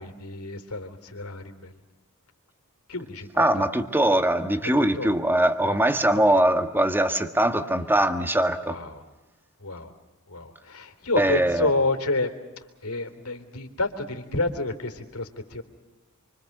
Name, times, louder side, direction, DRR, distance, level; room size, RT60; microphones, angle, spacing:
voice 1, 0.0-1.7 2.9-3.7 4.6-4.7 5.0-5.1 5.6-5.8 6.1-6.4 8.7-9.0 9.6-9.9 10.3-12.3 12.8-15.6, left 2 dB, 85° left, 6 dB, 3.5 m, -29 dB
voice 2, 3.4-8.8 11.1-11.7, right 1 dB, 10° right, 8 dB, 1.7 m, -22 dB
28.5 x 25.0 x 6.7 m, 1.1 s
head